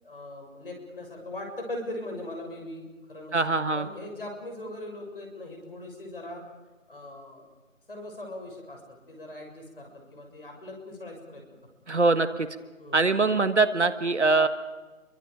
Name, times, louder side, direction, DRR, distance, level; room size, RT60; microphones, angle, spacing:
voice 1, 0.0-6.4 6.9-7.4 7.9-11.4 12.8-13.2, left 1 dB, 45° left, 2 dB, 7.2 m, -40 dB
voice 2, 3.3-3.9 11.9-12.5 12.9-14.5, right 3 dB, 55° right, 10 dB, 1.5 m, -23 dB
29.0 x 24.5 x 5.1 m, 1.2 s
figure-of-eight pair, 175°, 40 cm